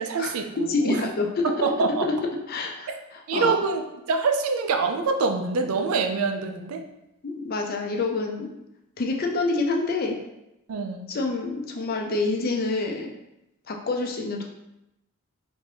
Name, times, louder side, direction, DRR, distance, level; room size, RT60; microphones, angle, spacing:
voice 1, 0.0-1.0 1.4-2.1 3.3-6.8 10.7-11.1, right 4 dB, 80° right, 5 dB, 0.4 m, -25 dB
voice 2, 0.7-1.5 2.5-3.6 7.2-8.5 9.0-10.2 11.1-13.1 13.7-14.4, left 3 dB, 45° left, 2 dB, 0.4 m, -27 dB
3.4 x 2.6 x 3.3 m, 0.89 s
head